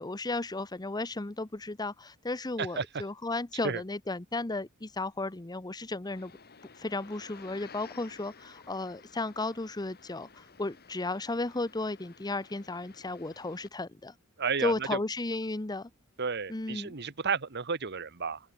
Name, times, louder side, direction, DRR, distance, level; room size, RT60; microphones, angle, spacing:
voice 1, 0.0-6.3 6.8-14.1 14.6-15.9 16.5-17.0, left 2 dB, 20° left, 0.8 m, -34 dB
sound 1, 6.0-13.7, left 5 dB, 50° left, 2.6 m, -54 dB
voice 2, 14.4-14.9 16.2-18.4, right 5 dB, 55° right, 1.4 m, -32 dB
head